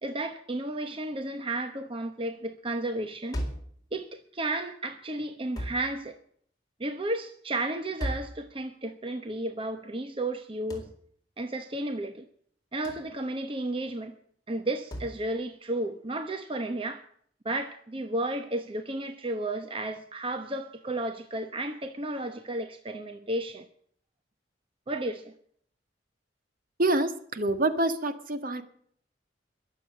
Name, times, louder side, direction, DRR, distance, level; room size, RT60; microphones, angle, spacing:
voice 1, 0.0-3.4 3.9-6.1 6.8-10.9 11.4-12.2 12.7-14.1 14.5-17.0 17.4-23.7 24.9-25.3, right 1 dB, 30° right, 1.0 m, -33 dB
sound 1, 3.3-3.8 5.6-5.9 8.0-8.4 10.7-11.0 12.8-13.1 14.9-15.2, equal, 20° left, 4.1 m, -34 dB
voice 2, 26.8-28.6, right 2 dB, 50° right, 1.6 m, -26 dB
22.0 x 7.7 x 7.6 m
head